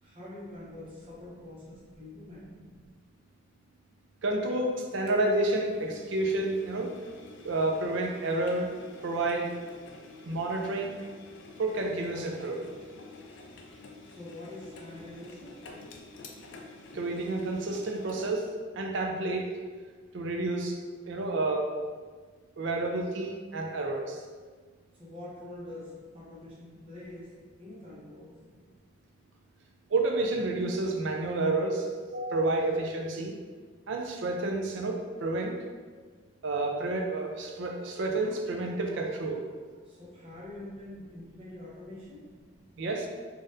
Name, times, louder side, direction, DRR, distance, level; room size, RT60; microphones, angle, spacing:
voice 1, 0.0-2.5 14.0-15.6 24.9-27.3 27.6-28.3 39.8-42.2, left 1 dB, 30° right, -7 dB, 0.9 m, -45 dB
voice 2, 4.2-7.0 7.4-8.8 9.0-9.5 10.2-11.0 11.6-12.7 16.9-18.5 18.7-19.5 20.1-20.8 21.1-21.7 22.6-24.2 29.9-33.4 33.9-35.6 36.4-39.5 42.8-43.1, right 2 dB, 65° right, 2 dB, 0.4 m, -30 dB
Engine, 5.1-18.5, left 3 dB, 65° left, 0.4 m, -49 dB
4.1 x 2.5 x 2.5 m, 1.5 s
head